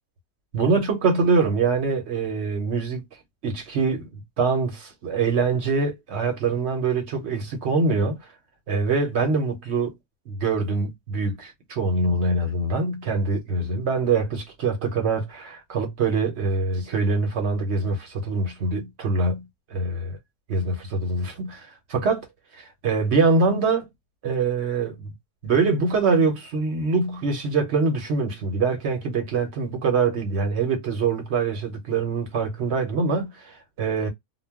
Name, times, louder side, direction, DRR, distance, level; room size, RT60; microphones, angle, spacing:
voice 1, 0.5-3.0 3.4-4.1 4.4-8.2 8.7-9.9 10.3-19.4 19.7-20.2 20.5-22.3 22.6-23.9 24.2-25.1 25.4-34.1, right 4 dB, 55° right, 0.9 m, -24 dB
2.3 x 2.2 x 3.3 m
omnidirectional pair, 1.5 m